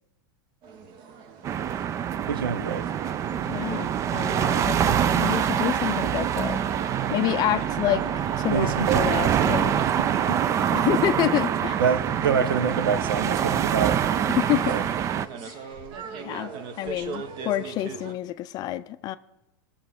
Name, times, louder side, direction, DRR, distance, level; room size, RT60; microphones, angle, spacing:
sound 1, 0.6-18.1, right 5 dB, 40° right, 1.0 m, -42 dB
sound 2, 1.4-15.3, right 9 dB, 25° right, 0.4 m, -25 dB
voice 1, 2.3-2.9 8.5-9.1 10.0-10.4 11.8-14.0 14.7-14.8, right 6 dB, 85° right, 0.8 m, -26 dB
voice 2, 3.5-6.6 7.1-8.0 8.4-9.8 10.7-11.8 14.3-14.7 15.4-15.6 16.2-16.5 16.8-19.2, left 14 dB, 35° left, 0.5 m, -28 dB
20.0 x 7.1 x 3.5 m
hypercardioid pair, 120°, 12 cm